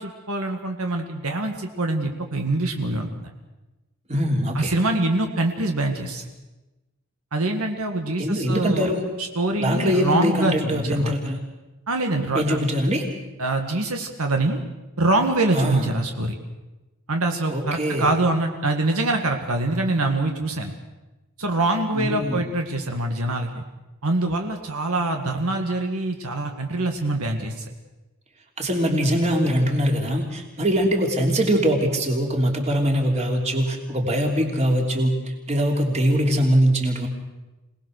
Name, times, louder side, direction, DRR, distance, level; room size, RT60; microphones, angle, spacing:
voice 1, 0.0-3.3 4.5-6.3 7.3-8.9 9.2-11.1 11.9-12.6 13.4-14.6 15.0-16.3 17.1-20.7 21.4-23.6 24.0-27.6, right 2 dB, 75° right, 4 dB, 1.8 m, -24 dB
voice 2, 4.1-4.8 8.2-9.0 9.6-11.4 12.3-13.0 15.5-15.9 17.5-18.1 21.9-22.4 28.6-35.1 35.5-37.1, equal, 30° right, 1 dB, 3.2 m, -22 dB
26.5 x 19.0 x 6.6 m, 1.1 s
head